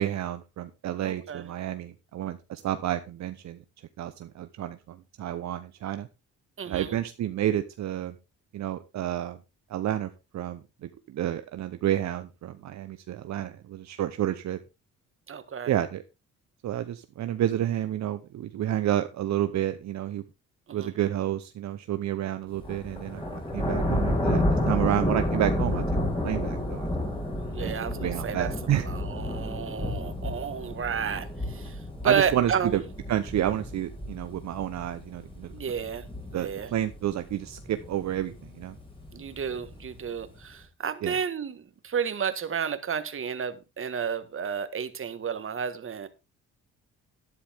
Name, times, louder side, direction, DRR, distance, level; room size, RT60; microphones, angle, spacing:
voice 1, 0.0-3.6 4.0-6.1 6.7-8.2 8.5-9.4 9.7-14.6 15.7-16.0 16.6-20.2 20.7-23.2 23.5-25.8 26.2-26.9 27.6-27.7 28.0-28.9 32.0-32.8 33.1-35.5 36.3-38.7 41.0-41.2, right 12 dB, 65° right, 10 dB, 0.8 m, -30 dB
voice 2, 1.0-1.5 6.6-7.0 15.3-15.7 20.7-20.9 27.4-28.5 28.8-31.8 32.0-32.8 35.5-36.7 39.1-46.1, right 7 dB, 45° right, 12 dB, 1.6 m, -31 dB
sound 1, 22.5-40.4, left 1 dB, 15° left, 5.0 m, -31 dB
11.5 x 10.0 x 3.5 m, 0.27 s
cardioid pair, 90°, 30 cm